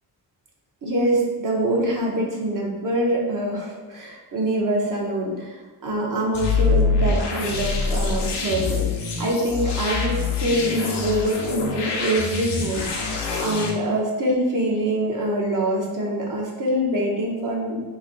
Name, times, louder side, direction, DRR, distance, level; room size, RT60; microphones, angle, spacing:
voice 1, 0.8-5.6 5.8-8.9 9.2-17.8, right 1 dB, 50° right, -3 dB, 0.9 m, -24 dB
sound 1, 6.3-13.7, left 4 dB, 80° left, 0.7 m, -25 dB
3.1 x 2.6 x 3.8 m, 1.3 s
cardioid pair, 95°, 41 cm